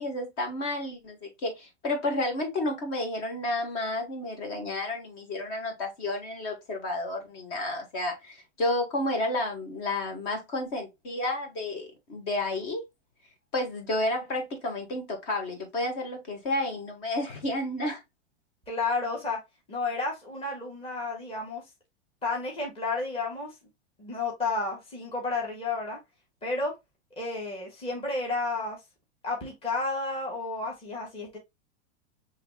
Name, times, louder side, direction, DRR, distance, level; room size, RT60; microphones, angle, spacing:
voice 1, 0.0-12.8 13.5-18.0, left 1 dB, 45° left, 1.6 m, -31 dB
voice 2, 18.7-19.4 19.7-21.6 22.2-23.5 24.0-26.0 26.4-26.7 27.2-28.8 29.2-31.4, left 3 dB, 15° left, 1.5 m, -31 dB
5.7 x 3.2 x 2.2 m
supercardioid pair, 145°, 34 cm